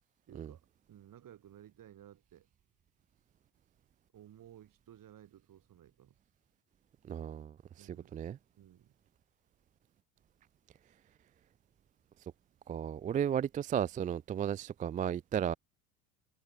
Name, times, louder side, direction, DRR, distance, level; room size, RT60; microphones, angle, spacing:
voice 1, 0.3-0.6 0.9-2.5 4.1-6.2 7.8-8.3 8.6-8.9, right 11 dB, 45° right, 5.0 m, -56 dB
voice 2, 7.0-8.4 12.7-15.5, right 9 dB, 20° right, 0.3 m, -34 dB
hypercardioid pair, 75°, 46 cm